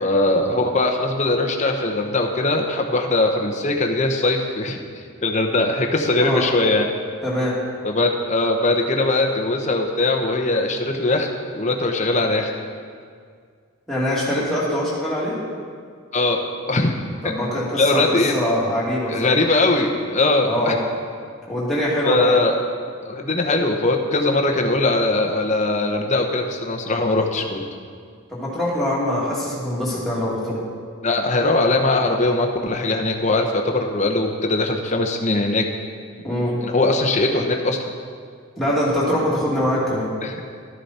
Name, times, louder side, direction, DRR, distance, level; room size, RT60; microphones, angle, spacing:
voice 1, 0.0-6.9 7.8-11.3 11.5-12.5 16.1-16.9 17.2-17.3 17.8-18.3 19.1-20.7 22.0-22.6 23.0-27.6 31.0-35.7 36.6-37.8 40.2-40.3, left 2 dB, 30° left, 3 dB, 0.9 m, -20 dB
voice 2, 7.2-7.6 13.9-15.4 17.2-19.3 20.5-20.8 21.5-22.3 28.3-30.6 36.2-36.6 38.6-40.1, equal, ahead, -8 dB, 2.5 m, -23 dB
12.5 x 10.0 x 4.3 m, 2.1 s
head